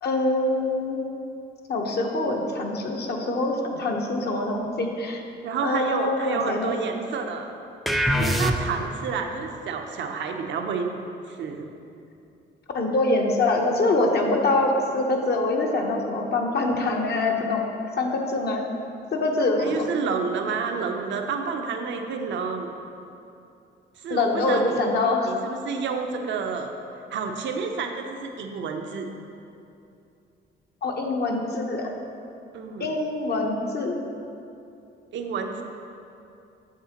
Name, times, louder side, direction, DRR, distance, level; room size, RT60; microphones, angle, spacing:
voice 1, 0.0-1.0 1.7-5.2 5.6-6.7 12.7-17.7 18.0-18.6 19.1-19.9 24.1-25.4 30.8-31.9 32.8-33.9, left 2 dB, 55° left, 1 dB, 0.9 m, -24 dB
voice 2, 5.4-7.5 8.2-10.9 11.3-11.7 19.6-22.7 24.0-24.8 25.2-26.7 27.1-29.1 32.5-32.9 35.1-35.6, right 5 dB, 70° right, 4 dB, 0.7 m, -29 dB
sound 1, 7.9-9.0, equal, ahead, 0.4 m, -23 dB
8.4 x 6.9 x 2.9 m, 2.7 s
cardioid pair, 90°, 20 cm